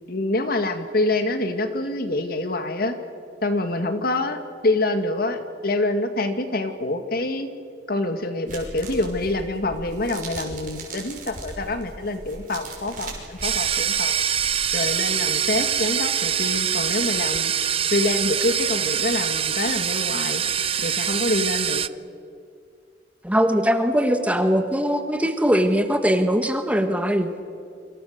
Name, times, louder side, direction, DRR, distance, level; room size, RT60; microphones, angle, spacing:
voice 1, 0.1-3.0 3.4-7.5 7.9-14.1 14.7-17.5 17.9-20.4 20.8-21.8, left 2 dB, 55° left, 7 dB, 2.0 m, -26 dB
sound 1, 8.5-14.7, right 3 dB, 50° right, 6.1 m, -39 dB
sound 2, 13.4-21.9, right 9 dB, 35° right, 0.5 m, -24 dB
voice 2, 23.2-27.3, equal, 10° right, 6 dB, 1.5 m, -21 dB
27.0 x 25.5 x 6.7 m, 2.3 s
head